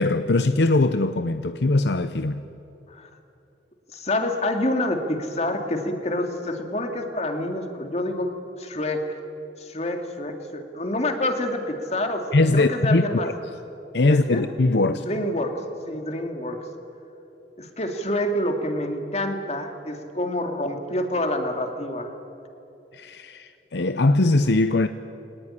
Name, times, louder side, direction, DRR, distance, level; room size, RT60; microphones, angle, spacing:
voice 1, 0.0-2.4 12.3-13.3 13.9-15.1 22.9-24.9, left 2 dB, 70° left, 0.7 m, -21 dB
voice 2, 3.9-8.3 8.6-9.1 9.6-12.2 12.5-13.3 14.1-14.5 14.8-16.6 17.6-22.1, left 1 dB, 40° left, 2.4 m, -27 dB
24.0 x 19.0 x 10.0 m
head